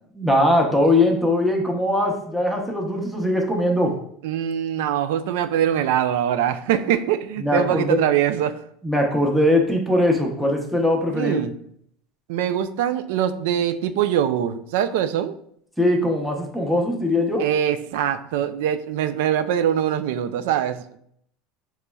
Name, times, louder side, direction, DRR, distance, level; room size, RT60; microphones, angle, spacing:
voice 1, 0.2-3.9 7.4-8.0 8.8-11.4 15.8-17.4, left 1 dB, ahead, 0 dB, 0.7 m, -20 dB
voice 2, 4.2-8.6 11.1-11.5 12.3-15.4 17.4-21.0, right 10 dB, 85° right, 10 dB, 0.3 m, -23 dB
6.5 x 3.0 x 2.3 m, 0.67 s
cardioid pair, 160°, 0 cm